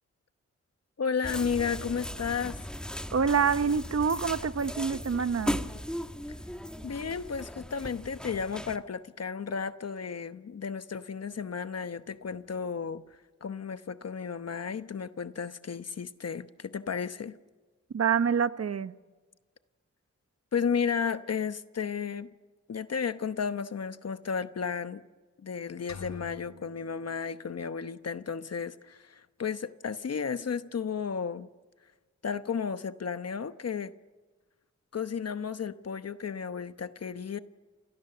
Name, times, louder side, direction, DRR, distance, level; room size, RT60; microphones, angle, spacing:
voice 1, 1.0-2.7 6.8-17.4 20.5-22.3 22.7-25.0 25.4-31.5 32.2-33.9 34.9-37.4, left 6 dB, 60° left, 1.0 m, -33 dB
sound 1, 1.2-8.8, equal, 5° left, 1.4 m, -37 dB
voice 2, 3.1-5.6 17.9-18.9, right 6 dB, 60° right, 1.1 m, -26 dB
sound 2, 25.9-27.8, left 6 dB, 75° left, 3.4 m, -48 dB
29.5 x 28.0 x 6.9 m
wide cardioid pair, 100°, 29 cm